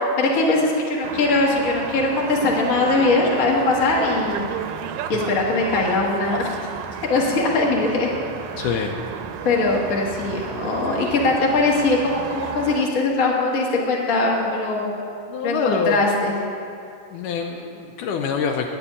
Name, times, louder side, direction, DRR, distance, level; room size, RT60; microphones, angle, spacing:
voice 1, 0.2-4.4 5.1-6.5 7.1-8.1 9.4-14.9 15.4-16.4, left 3 dB, 45° left, -2 dB, 1.1 m, -21 dB
sound 1, 1.0-12.9, right 8 dB, 85° right, 2.3 m, -33 dB
voice 2, 8.6-9.0 15.3-16.0 17.1-18.7, left 6 dB, 80° left, 3 dB, 2.0 m, -25 dB
9.6 x 6.9 x 8.6 m, 2.4 s
omnidirectional pair, 3.9 m